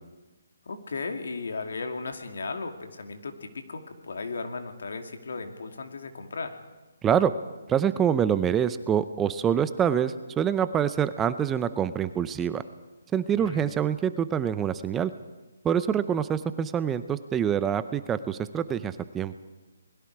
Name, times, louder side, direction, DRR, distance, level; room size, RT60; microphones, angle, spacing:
voice 1, 0.7-6.6 13.3-13.8, left 4 dB, 70° left, 5 dB, 2.6 m, -36 dB
voice 2, 7.7-12.6 13.1-15.1 15.6-19.3, right 8 dB, 10° right, 12 dB, 0.6 m, -26 dB
29.5 x 21.0 x 4.8 m, 1.2 s
hypercardioid pair, 155°, 0 cm